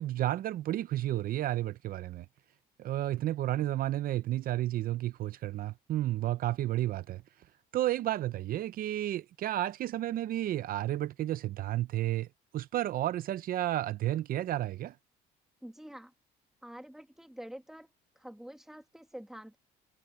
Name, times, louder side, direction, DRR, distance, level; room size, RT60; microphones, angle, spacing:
voice 1, 0.0-2.3 2.8-7.2 7.7-12.3 12.5-14.9, right 14 dB, 60° right, 0.6 m, -32 dB
voice 2, 15.6-16.1 16.6-17.9 18.1-19.6, equal, ahead, 1.6 m, -47 dB
cardioid pair, 110°, 17 cm